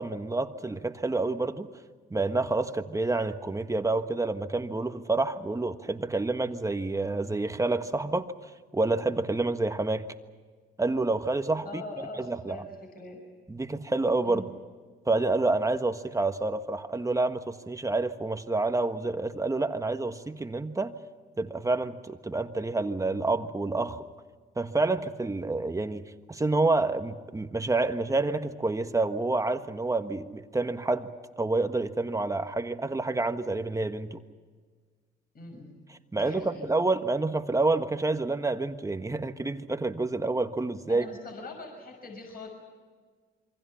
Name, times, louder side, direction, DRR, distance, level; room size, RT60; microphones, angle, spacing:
voice 1, 0.0-1.7 2.1-8.3 8.7-10.1 10.8-11.8 12.2-12.6 13.5-14.4 15.0-20.9 21.4-24.0 24.6-31.1 31.4-34.2 36.1-41.1, right 3 dB, 15° right, 8 dB, 1.4 m, -28 dB
voice 2, 11.6-13.2 14.2-14.5 35.3-35.8 36.1-36.7 40.9-42.5, left 2 dB, 50° left, 2 dB, 6.3 m, -42 dB
28.0 x 24.0 x 5.8 m, 1.5 s
cardioid pair, 90°, 20 cm